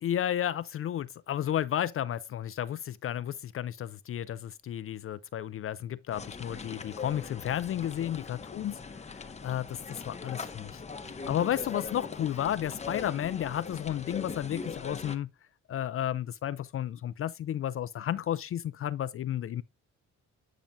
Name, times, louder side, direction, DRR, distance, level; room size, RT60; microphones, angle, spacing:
voice 1, 0.0-8.8 9.1-10.8 11.3-15.3 15.7-19.6, left 11 dB, 45° left, 0.4 m, -32 dB
sound 1, 6.1-15.2, left 5 dB, 20° left, 0.8 m, -41 dB
8.8 x 5.8 x 2.6 m
cardioid pair, 90°, 30 cm